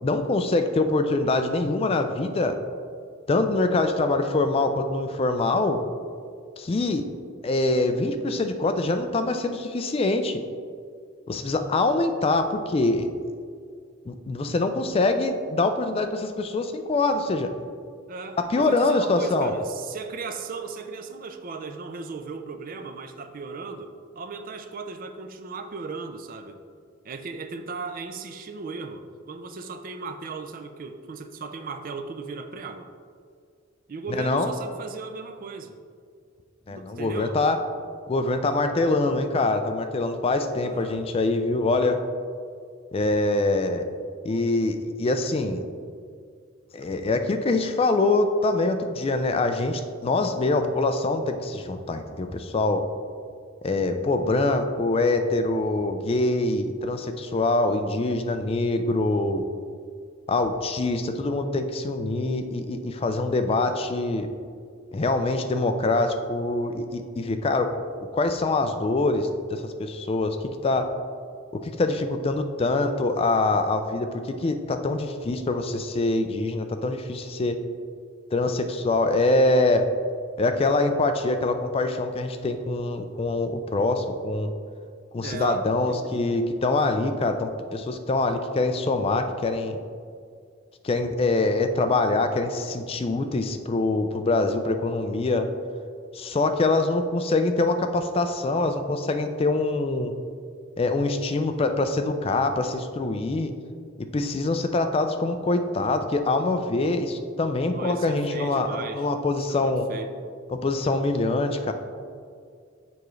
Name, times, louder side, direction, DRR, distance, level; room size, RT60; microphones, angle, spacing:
voice 1, 0.0-2.6 3.3-5.8 6.6-7.1 7.4-10.4 11.3-13.1 14.1-17.5 18.4-19.6 34.1-34.5 36.7-37.6 38.1-42.0 42.9-43.8 44.2-45.6 46.7-52.8 53.6-59.5 60.3-64.3 64.9-67.7 68.1-70.4 70.6-70.9 71.6-77.6 78.3-79.9 80.4-84.5 85.1-89.8 90.8-95.5 96.1-100.1 100.8-103.5 104.1-109.9 110.5-111.7, left 2 dB, 30° left, 7 dB, 0.3 m, -24 dB
voice 2, 18.1-26.6 27.0-32.9 33.9-35.8 36.7-37.4 40.6-41.0 85.2-86.1 107.7-109.1 109.5-110.1, right 4 dB, 45° right, 7 dB, 0.4 m, -36 dB
6.9 x 4.9 x 3.1 m, 2.1 s
head